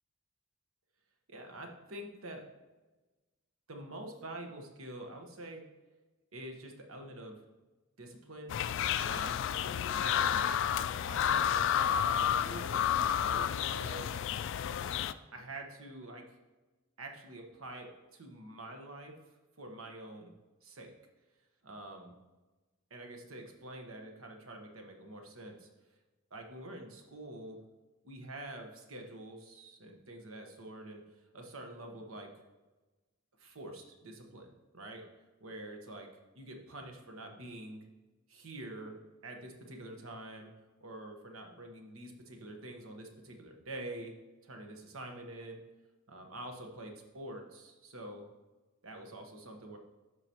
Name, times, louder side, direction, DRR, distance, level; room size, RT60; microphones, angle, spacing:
voice 1, 1.3-2.4 3.7-5.6 6.3-7.4 8.0-8.5 9.0-9.4 10.0-12.8 13.2-14.2 15.3-16.3 17.0-19.2 19.6-20.3 20.6-20.9 21.6-22.1 22.9-25.7 26.3-27.6 28.0-31.0 31.3-32.3 33.4-34.5 34.7-35.0 35.4-36.1 36.3-37.8 38.3-39.0 39.2-40.5 40.8-44.1 44.4-45.6 46.1-48.3 48.8-49.8, right 1 dB, 80° right, 3 dB, 1.2 m, -46 dB
sound 1, 8.5-15.1, left 9 dB, 60° left, 0.3 m, -31 dB
12.5 x 4.9 x 3.0 m, 1.2 s
head